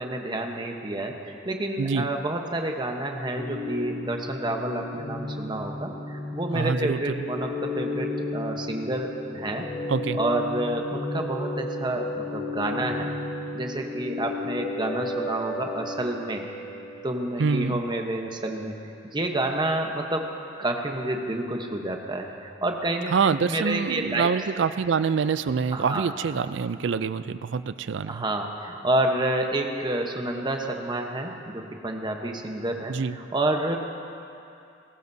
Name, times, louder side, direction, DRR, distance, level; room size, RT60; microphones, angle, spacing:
voice 1, 0.0-9.7 10.1-13.1 13.5-16.5 17.0-18.8 19.1-20.3 20.6-24.3 25.7-26.1 28.1-33.8, right 1 dB, 25° right, 3 dB, 1.0 m, -29 dB
sound 1, 3.3-17.7 17.9-18.0, left 2 dB, 45° left, 2.2 m, -33 dB
voice 2, 6.5-7.0 9.9-10.2 17.4-17.8 23.1-28.2 32.9-33.2, right 5 dB, 70° right, 14 dB, 0.4 m, -25 dB
19.5 x 17.5 x 2.7 m, 2.7 s
head